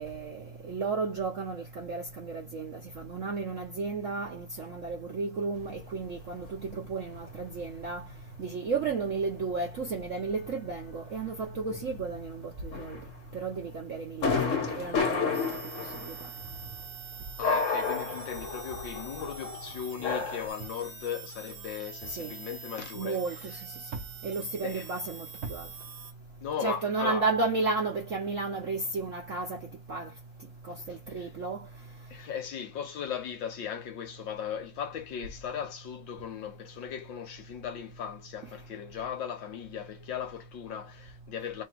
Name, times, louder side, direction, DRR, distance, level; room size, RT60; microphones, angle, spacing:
voice 1, 0.0-8.1 8.4-13.0 13.3-15.5 16.0-16.3 22.1-22.3 22.9-25.7 26.6-30.1 30.6-31.7, right 4 dB, 85° right, 0.6 m, -33 dB
sound 1, 5.6-5.8 6.1-6.3 6.6-8.9 9.2-9.5 9.9-10.1 10.4-10.5 10.8-13.6 14.2-17.0 17.4-20.5, left 4 dB, 45° left, 1.3 m, -32 dB
sound 2, 15.3-26.1, right 5 dB, 35° right, 1.0 m, -46 dB
voice 2, 17.4-23.6 24.6-24.9 26.4-27.3 30.9-31.3 32.1-41.6, left 8 dB, 65° left, 1.4 m, -37 dB
3.3 x 2.7 x 4.4 m
omnidirectional pair, 2.4 m